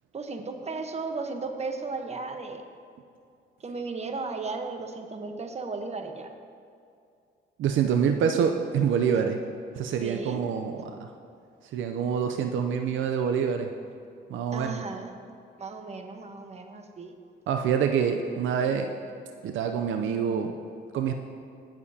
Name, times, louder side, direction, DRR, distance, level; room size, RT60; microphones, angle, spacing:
voice 1, 0.1-2.6 3.6-6.3 10.0-10.4 14.5-15.1 15.6-17.1, right 3 dB, 35° right, 5 dB, 1.1 m, -35 dB
voice 2, 7.6-9.4 9.7-11.1 11.6-13.7 14.3-14.8 17.5-18.9 19.4-20.6 20.9-21.1, right 7 dB, 75° right, 5 dB, 0.6 m, -26 dB
18.0 x 7.2 x 2.8 m, 2.4 s
cardioid pair, 90°, 20 cm